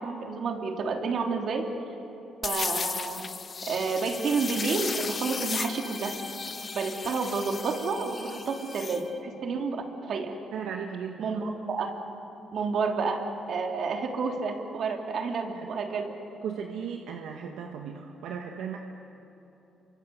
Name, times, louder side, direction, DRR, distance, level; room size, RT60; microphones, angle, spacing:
voice 1, 0.0-1.8 2.4-3.3 3.7-6.2 6.7-10.4 11.2-12.0 12.5-16.2, right 4 dB, 60° right, 3 dB, 3.2 m, -30 dB
sound 1, 2.4-9.0, left 5 dB, 40° left, 1.2 m, -35 dB
Bowed string instrument, 4.0-9.3, left 1 dB, ahead, 3.9 m, -44 dB
voice 2, 10.5-11.4 15.5-15.7 16.4-18.8, right 7 dB, 85° right, 3 dB, 1.7 m, -36 dB
29.0 x 24.0 x 8.2 m, 3.0 s
cardioid pair, 90°, 0 cm